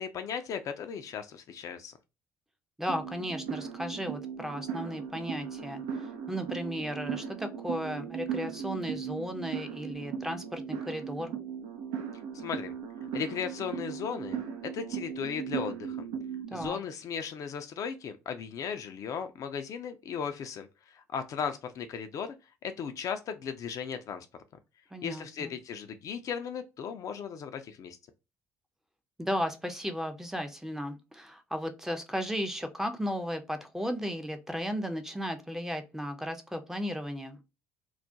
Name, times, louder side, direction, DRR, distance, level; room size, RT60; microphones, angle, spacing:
voice 1, 0.0-1.9 12.3-12.7 13.1-14.4 14.6-16.1 16.5-22.3 22.6-24.3 25.0-28.0, left 7 dB, 50° left, 0.3 m, -36 dB
voice 2, 2.8-5.8 6.3-11.4 16.5-16.8 24.9-25.5 29.2-37.4, equal, 5° right, 0.5 m, -35 dB
sound 1, 2.9-16.7, right 7 dB, 70° right, 0.3 m, -37 dB
2.3 x 2.1 x 2.6 m
hypercardioid pair, 55°, 7 cm